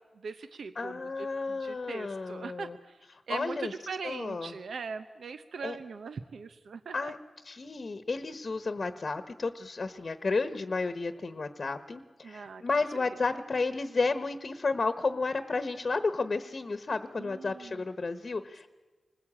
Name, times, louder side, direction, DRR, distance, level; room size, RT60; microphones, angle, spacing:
voice 1, 0.2-1.0 1.5-3.0 3.3-7.1 12.2-12.6 13.1-13.2 17.2-17.8, right 5 dB, 85° right, 10 dB, 0.8 m, -40 dB
voice 2, 0.7-2.8 3.3-3.7 4.0-4.5 5.6-5.8 6.9-7.2 7.4-18.7, left 3 dB, 50° left, 10 dB, 1.1 m, -32 dB
27.5 x 20.0 x 8.7 m, 1.4 s
wide cardioid pair, 75°, 0 cm